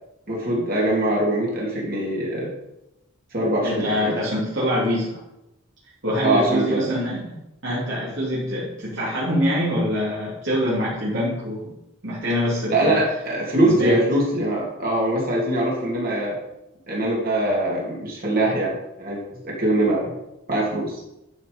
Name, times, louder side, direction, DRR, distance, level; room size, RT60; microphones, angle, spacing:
voice 1, 0.3-2.5 3.3-4.1 6.2-6.9 12.7-16.4 16.9-20.2 20.5-21.0, right 1 dB, 40° right, -4 dB, 2.8 m, -23 dB
voice 2, 3.6-5.2 6.0-7.4 7.6-11.8 12.0-13.0 13.6-14.0, equal, 60° right, -9 dB, 3.1 m, -24 dB
11.0 x 6.1 x 5.3 m, 0.90 s
head